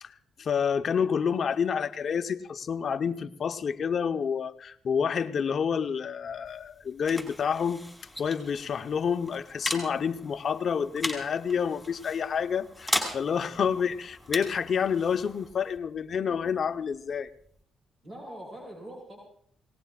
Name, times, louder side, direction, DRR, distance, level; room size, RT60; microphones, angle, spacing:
voice 1, 0.0-7.8 8.2-17.3, left 7 dB, 50° left, 8 dB, 0.9 m, -29 dB
sound 1, 6.3-17.6, left 1 dB, 5° left, 4.5 m, -38 dB
voice 2, 18.0-19.2, right 1 dB, 45° right, -3 dB, 6.2 m, -43 dB
26.5 x 18.5 x 2.4 m, 0.62 s
cardioid pair, 90°, 0 cm